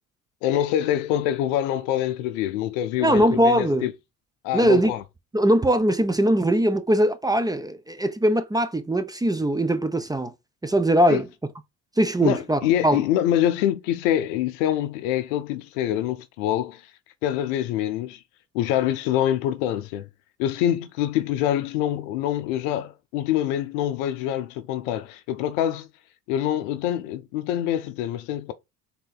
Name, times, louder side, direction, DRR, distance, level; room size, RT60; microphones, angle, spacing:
voice 1, 0.4-3.9 4.4-5.0 11.1-11.2 12.2-16.8 17.2-18.2 18.5-20.1 20.4-25.9 26.3-28.5, left 11 dB, 75° left, 0.6 m, -25 dB
voice 2, 3.0-3.9 4.5-4.9 5.3-10.3 10.6-11.3 12.0-13.0, right 1 dB, 10° right, 0.5 m, -21 dB
3.7 x 2.8 x 3.9 m
hypercardioid pair, 55°, 38 cm